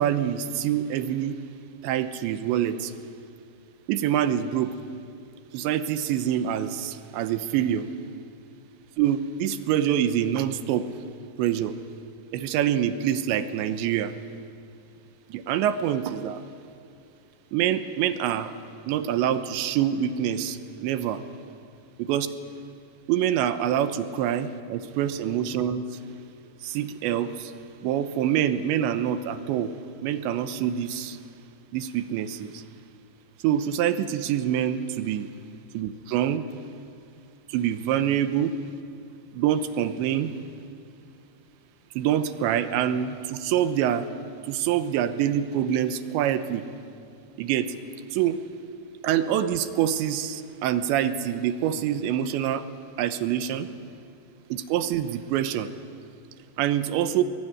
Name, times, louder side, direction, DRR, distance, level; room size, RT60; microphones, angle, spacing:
voice 1, 0.0-1.4 1.8-2.9 3.9-4.7 5.5-7.9 9.0-10.9 11.4-11.7 12.3-14.1 15.3-16.4 17.5-18.5 18.9-21.2 22.0-22.3 23.1-25.9 26.6-27.5 27.8-29.7 30.0-31.2 31.7-32.6 33.4-35.3 35.7-36.4 37.5-38.5 39.3-40.3 42.0-44.1 44.5-46.7 47.4-47.7 48.1-48.4 49.0-52.6 53.0-53.7 54.5-55.7 56.6-57.2, right 10 dB, 85° right, 10 dB, 3.2 m, -25 dB
23.0 x 22.0 x 9.8 m, 2.5 s
omnidirectional pair, 5.2 m